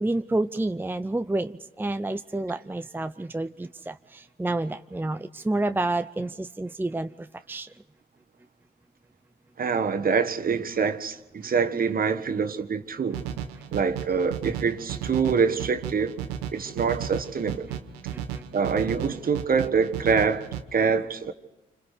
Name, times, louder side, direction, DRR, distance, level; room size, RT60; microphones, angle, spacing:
voice 1, 0.0-7.7 18.1-18.4, right 2 dB, 10° right, 0.7 m, -29 dB
voice 2, 9.6-13.2 13.7-16.2 16.5-17.7 18.5-21.3, right 5 dB, 50° right, 1.5 m, -25 dB
sound 1, 13.1-20.6, right 9 dB, 90° right, 1.0 m, -35 dB
27.5 x 26.0 x 5.0 m
hypercardioid pair, 45°, 20 cm